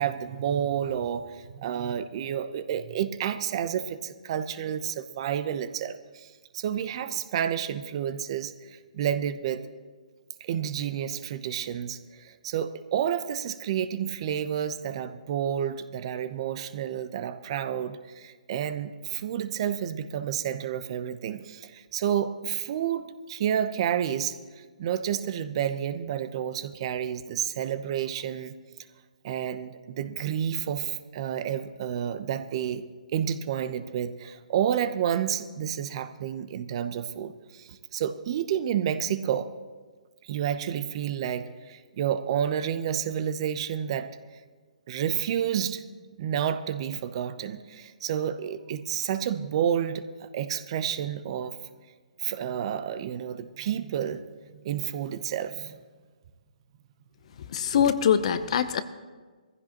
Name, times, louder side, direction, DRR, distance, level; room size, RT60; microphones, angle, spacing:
voice 1, 0.0-9.6 10.4-28.5 29.2-32.8 33.1-39.5 40.2-44.1 44.9-45.8 46.2-51.6 52.2-54.2 54.5-55.8, right 9 dB, 40° right, 12 dB, 0.8 m, -30 dB
voice 2, 57.5-58.8, left 8 dB, 50° left, 12 dB, 0.8 m, -23 dB
21.0 x 15.0 x 3.0 m, 1.4 s
hypercardioid pair, 145°, 4 cm